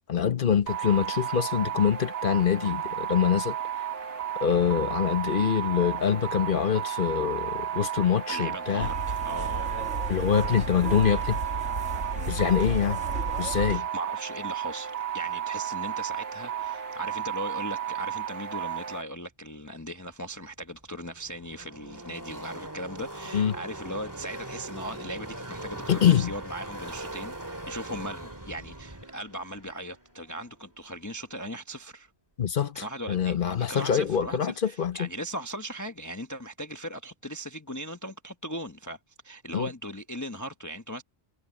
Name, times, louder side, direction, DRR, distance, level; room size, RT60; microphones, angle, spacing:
voice 1, 0.1-3.5 4.4-8.9 10.1-11.4 12.3-13.0 13.4-13.8 23.3-23.5 25.9-26.3 32.4-35.1 39.5-39.7, left 8 dB, 50° left, 1.0 m, -25 dB
sound 1, 0.7-19.0, right 10 dB, 60° right, 1.1 m, -33 dB
voice 2, 8.3-9.7 12.2-12.4 13.7-32.1 32.7-39.0 39.2-41.0, equal, 15° left, 1.0 m, -38 dB
sound 2, 8.8-13.8, right 2 dB, 75° right, 3.1 m, -34 dB
Car passing by / Race car auto racing, 20.5-31.1, right 1 dB, 15° right, 2.0 m, -41 dB
omnidirectional pair, 1.3 m